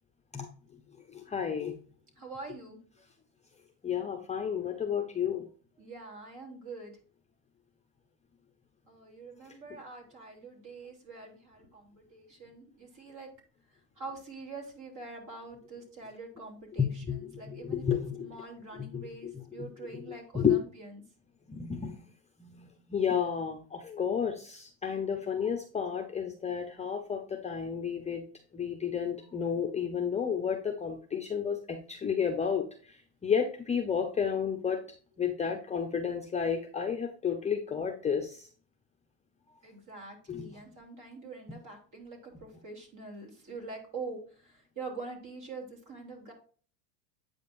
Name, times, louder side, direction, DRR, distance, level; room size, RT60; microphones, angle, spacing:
voice 1, 1.1-1.7 3.8-5.4 16.8-18.3 18.9-19.3 20.3-20.6 21.5-22.0 22.4-28.2 28.5-34.8 35.2-38.5 40.3-40.5, left 7 dB, 15° left, 3 dB, 0.7 m, -31 dB
voice 2, 2.2-2.8 5.8-7.0 8.9-13.3 14.0-17.8 18.2-21.0 39.6-46.3, right 3 dB, 35° right, 1 dB, 3.0 m, -45 dB
8.5 x 5.3 x 2.6 m, 0.41 s
hypercardioid pair, 105°, 49 cm